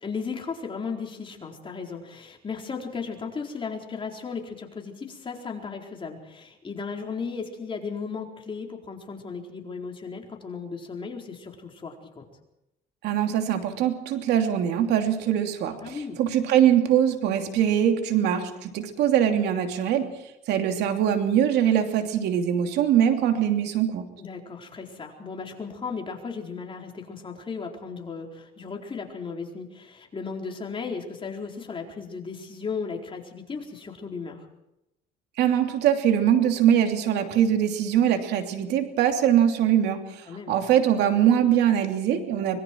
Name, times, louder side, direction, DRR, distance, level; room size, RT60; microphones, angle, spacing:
voice 1, 0.0-12.3 15.8-16.2 24.2-34.5 40.3-40.6, left 5 dB, 30° left, 1 dB, 4.4 m, -35 dB
voice 2, 13.0-20.1 20.5-24.0 35.4-42.6, right 10 dB, 80° right, 5 dB, 2.9 m, -22 dB
25.0 x 22.5 x 4.6 m, 0.87 s
cardioid pair, 110°, 17 cm